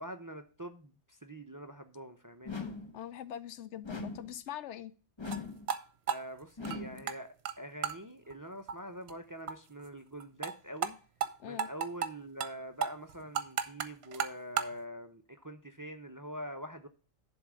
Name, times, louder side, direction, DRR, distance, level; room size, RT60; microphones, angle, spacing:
voice 1, 0.0-2.6 6.1-11.0 11.4-16.9, equal, 25° right, 7 dB, 0.5 m, -44 dB
sound 1, 2.4-3.0 3.8-4.4 5.2-5.7 6.6-7.1, left 4 dB, 25° left, 0.9 m, -40 dB
voice 2, 2.9-4.9 11.4-11.7, left 10 dB, 85° left, 14 dB, 1.0 m, -42 dB
sound 2, 5.2-5.4 5.7-5.8 6.1-7.2 7.4-7.5 7.8-8.0 8.3-8.4 8.7-8.8 9.1-9.2 9.5-9.6 9.8-9.9 10.2-10.5 10.8-10.9 11.2-11.3 11.6-12.1 12.4-12.5 12.8-14.7, right 8 dB, 70° right, 1.0 m, -33 dB
11.0 x 3.7 x 6.1 m, 0.37 s
omnidirectional pair, 1.2 m